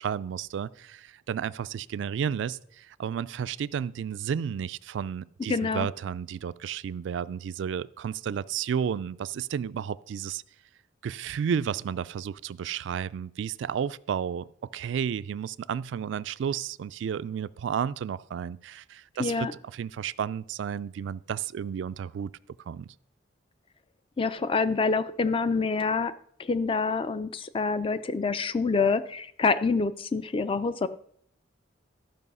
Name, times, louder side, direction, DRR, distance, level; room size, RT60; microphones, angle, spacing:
voice 1, 0.0-10.4 11.0-14.5 14.7-22.3 22.7-22.9, right 8 dB, 70° right, 0.3 m, -32 dB
voice 2, 5.5-5.9 19.2-19.5 24.2-26.1 26.4-30.9, left 4 dB, 30° left, 0.4 m, -26 dB
13.5 x 5.4 x 5.5 m
head